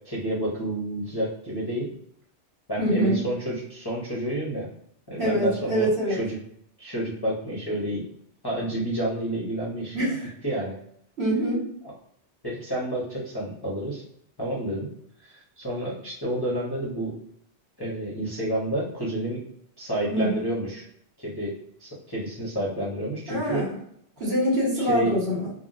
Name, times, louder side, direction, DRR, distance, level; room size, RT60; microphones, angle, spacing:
voice 1, 0.0-1.9 2.7-4.7 5.1-6.3 6.8-8.1 8.4-10.1 10.4-10.8 12.4-14.0 14.4-14.9 15.2-17.2 17.8-19.4 19.8-20.8 21.2-21.5 21.8-23.7 24.8-25.1, right 1 dB, 25° left, -7 dB, 0.6 m, -29 dB
voice 2, 2.8-3.3 5.2-6.2 9.9-10.3 11.2-11.6 20.1-20.5 23.3-23.8 24.2-25.5, equal, 65° right, -5 dB, 1.5 m, -24 dB
3.8 x 2.0 x 2.5 m, 0.70 s
omnidirectional pair, 1.2 m